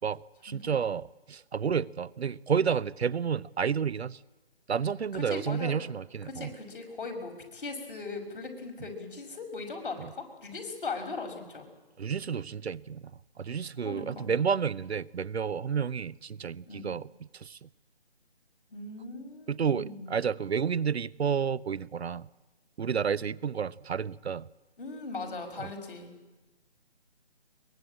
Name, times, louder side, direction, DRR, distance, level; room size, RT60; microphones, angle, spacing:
voice 1, 0.0-4.2 4.7-6.5 10.0-10.1 12.0-13.0 13.4-17.7 19.5-22.3 22.8-24.5 25.6-25.7, right 7 dB, 70° right, 0.7 m, -30 dB
voice 2, 5.1-5.7 6.3-11.6 13.8-14.3 16.7-16.9 18.7-20.1 24.8-26.1, left 3 dB, 50° left, 5.9 m, -39 dB
23.0 x 22.5 x 8.8 m
hypercardioid pair, 165°, 33 cm